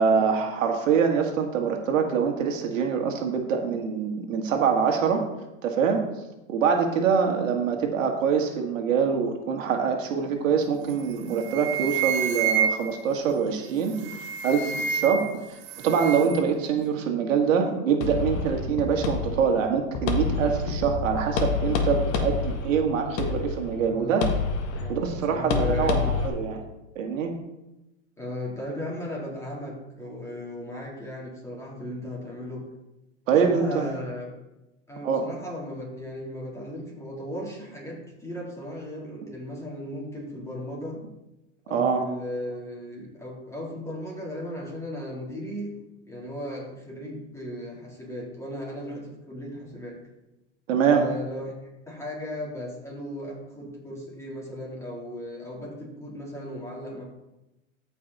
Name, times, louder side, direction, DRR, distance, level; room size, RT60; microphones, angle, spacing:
voice 1, 0.0-5.2 5.6-6.0 6.5-14.1 14.4-24.2 24.9-26.6 27.0-27.3 33.3-33.9 35.0-35.2 41.7-42.0 50.7-51.0, right 6 dB, 85° right, 3 dB, 1.8 m, -24 dB
sound 1, 10.9-11.1 11.4-13.1 13.9-15.4 15.6-16.4, right 7 dB, 60° right, 1.7 m, -28 dB
sound 2, 18.0-26.3, left 5 dB, 50° left, 1.6 m, -28 dB
voice 2, 23.8-24.2 24.8-26.3 28.2-32.6 33.3-34.3 34.9-41.0 41.6-45.8 46.1-50.0 50.9-57.0, equal, 5° left, -4 dB, 3.5 m, -36 dB
14.0 x 5.3 x 4.1 m, 0.95 s
supercardioid pair, 125°, 38 cm